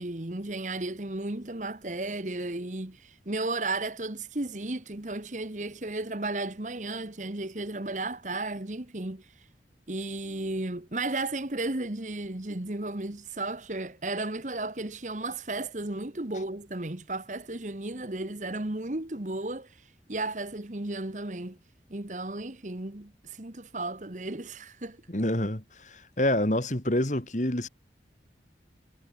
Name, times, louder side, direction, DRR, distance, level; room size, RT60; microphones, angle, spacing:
voice 1, 0.0-9.2 9.9-19.8 20.1-21.6 21.9-25.0, right 2 dB, 45° right, 1.4 m, -34 dB
voice 2, 25.1-27.7, left 1 dB, 45° left, 2.5 m, -27 dB
head